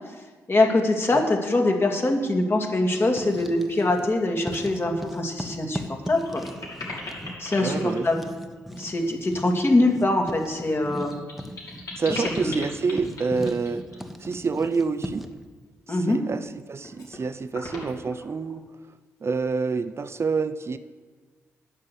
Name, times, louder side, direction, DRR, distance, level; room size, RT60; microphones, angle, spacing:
voice 1, 0.5-6.4 7.4-8.2 8.8-11.1 12.4-12.5 15.9-16.2, left 2 dB, 35° left, 2 dB, 2.2 m, -23 dB
sound 1, 2.7-3.0 3.4-3.7 4.1-4.2 5.4-5.5 5.9-9.0 10.6-14.0 15.9-16.5 16.8-17.2 17.5-18.6, left 2 dB, 60° left, 3.5 m, -39 dB
Writing, 3.0-4.1 4.4-15.4, equal, ahead, 1.2 m, -38 dB
voice 2, 7.6-8.1 12.0-13.9 14.2-15.3 15.9-18.7 19.2-20.8, right 4 dB, 40° right, 12 dB, 0.6 m, -27 dB
9.0 x 6.8 x 7.8 m, 1.4 s
hypercardioid pair, 40°, 7 cm